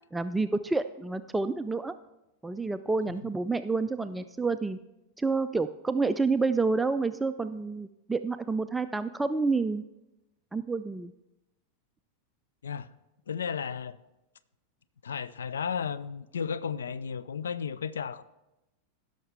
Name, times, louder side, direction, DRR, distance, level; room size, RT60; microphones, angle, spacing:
voice 1, 0.1-1.9 2.4-4.8 5.2-9.8 10.5-11.1, right 3 dB, 10° right, 10 dB, 0.3 m, -29 dB
voice 2, 13.3-14.0 15.0-18.2, left 6 dB, 65° left, 15 dB, 0.4 m, -34 dB
16.0 x 6.5 x 3.5 m, 0.95 s
figure-of-eight pair, 90°, 0 cm